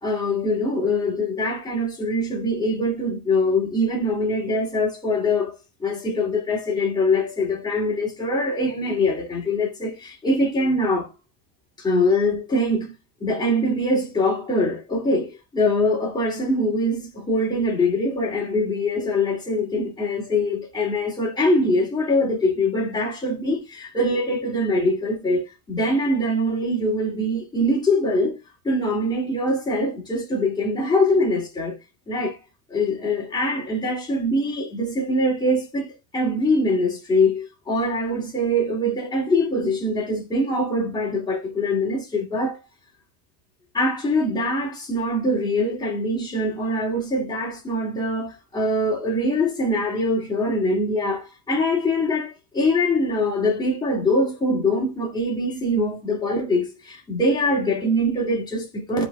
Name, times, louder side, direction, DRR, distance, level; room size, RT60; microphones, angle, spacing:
voice 1, 0.0-5.5 5.8-11.1 11.8-12.9 13.2-28.4 28.6-31.8 32.1-32.4 32.7-35.9 36.1-42.6 43.7-59.1, left 1 dB, 10° left, 2.6 m, -23 dB
14.0 x 5.0 x 2.3 m
supercardioid pair, 145°, 49 cm